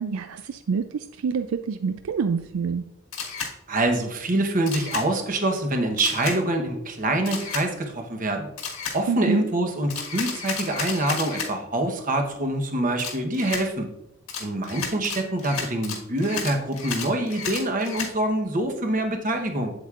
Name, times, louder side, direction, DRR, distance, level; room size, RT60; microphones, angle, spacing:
voice 1, 0.0-2.8 9.1-9.4, right 5 dB, 75° right, 9 dB, 0.4 m, -27 dB
Camera, 3.1-3.5 4.7-5.1 6.0-6.4 7.3-7.7 8.6-9.0 9.9-11.5 13.0-13.6 14.3-18.1, left 6 dB, 80° left, 1.6 m, -32 dB
voice 2, 3.7-8.5 8.9-13.9 14.4-19.7, right 1 dB, 40° right, 4 dB, 1.0 m, -25 dB
8.3 x 7.8 x 2.5 m, 0.83 s
head